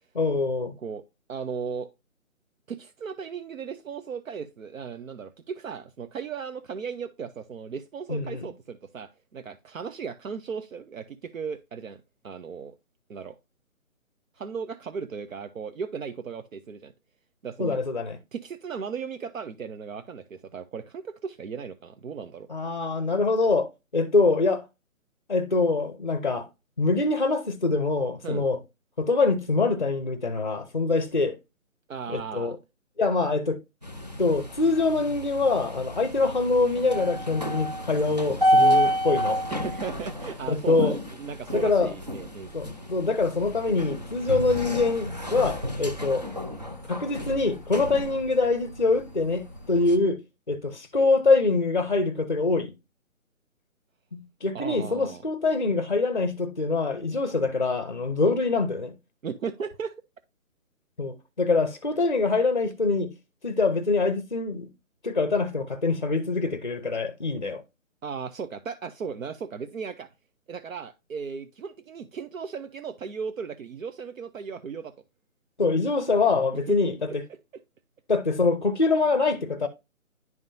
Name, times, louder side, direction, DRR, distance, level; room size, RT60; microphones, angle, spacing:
voice 1, 0.1-0.7 8.1-8.4 17.6-18.2 22.5-24.6 25.3-26.5 26.8-28.6 29.0-31.4 32.1-32.6 33.0-33.6 34.2-39.4 40.5-41.0 41.5-41.9 42.5-46.3 46.9-50.2 50.5-52.7 54.1-58.9 61.0-63.1 63.4-64.7 65.0-67.6 75.6-77.2 78.1-79.7, left 3 dB, 35° left, 0.5 m, -24 dB
voice 2, 1.3-1.9 2.7-12.7 13.1-13.4 14.3-16.9 17.4-17.8 18.3-22.5 28.2-28.5 31.9-32.6 39.5-42.5 54.5-55.2 59.2-59.9 68.0-70.1 70.5-74.9 76.7-77.2, right 6 dB, 70° right, 0.7 m, -36 dB
sound 1, 33.8-50.0, equal, 30° right, 0.5 m, -30 dB
10.5 x 3.7 x 2.6 m
hypercardioid pair, 170°, 42 cm